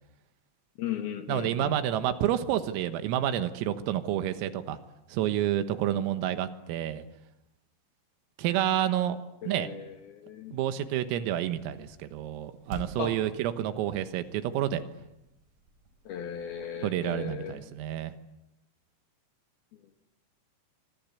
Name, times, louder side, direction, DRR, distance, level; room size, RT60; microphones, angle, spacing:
voice 1, 0.8-1.8 9.4-10.6 13.0-13.2 16.1-17.6, left 8 dB, 65° left, 6 dB, 2.8 m, -37 dB
voice 2, 1.3-4.8 5.1-7.1 8.4-9.2 9.5-9.7 10.5-14.8 16.8-18.1, right 11 dB, 85° right, 10 dB, 4.0 m, -29 dB
sound 1, 11.5-17.3, right 2 dB, 40° right, 5.4 m, -49 dB
26.0 x 26.0 x 8.4 m, 0.90 s
omnidirectional pair, 6.0 m